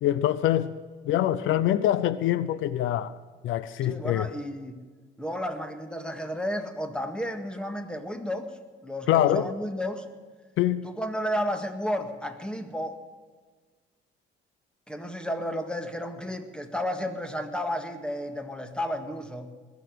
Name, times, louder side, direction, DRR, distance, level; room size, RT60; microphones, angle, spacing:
voice 1, 0.0-0.8 1.1-3.1 3.4-4.3 9.1-9.5 10.6-10.8, left 12 dB, 85° left, 0.7 m, -24 dB
voice 2, 3.8-4.8 5.2-8.5 8.8-10.1 10.8-13.0 14.9-19.5, equal, 5° left, 1.9 m, -32 dB
21.0 x 7.2 x 7.9 m
cardioid pair, 90°, 20 cm